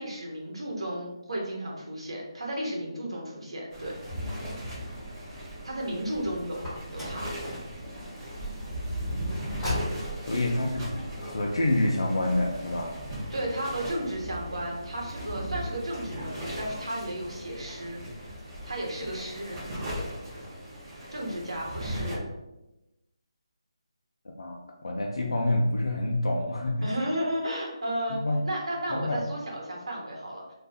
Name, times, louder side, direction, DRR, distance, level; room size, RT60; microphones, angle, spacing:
voice 1, 0.0-3.9 5.6-6.6 6.9-7.6 13.3-18.4 18.6-19.6 21.1-22.3 26.8-30.5, right 1 dB, 70° right, -2 dB, 1.1 m, -34 dB
sound 1, 3.7-22.2, equal, 30° right, 0.9 m, -38 dB
Car, 6.5-7.3 9.4-10.3, left 2 dB, 5° left, 1.2 m, -33 dB
voice 2, 10.3-10.9 11.2-13.0 24.4-26.9 28.2-28.4 28.9-29.2, left 1 dB, 75° left, -1 dB, 0.5 m, -27 dB
2.4 x 2.3 x 3.5 m, 0.97 s
figure-of-eight pair, 165°, 3 cm